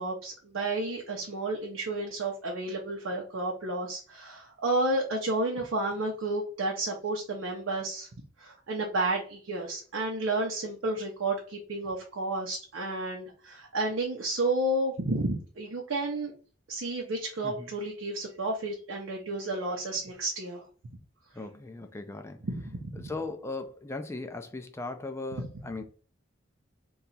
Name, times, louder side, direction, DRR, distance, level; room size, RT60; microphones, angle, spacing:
voice 1, 0.0-8.1 8.4-16.3 16.7-20.6 22.4-23.1 25.4-25.5, right 2 dB, 75° right, 0.6 m, -31 dB
voice 2, 21.3-22.4 23.0-25.8, left 3 dB, 15° left, 0.3 m, -38 dB
2.8 x 2.3 x 4.0 m
head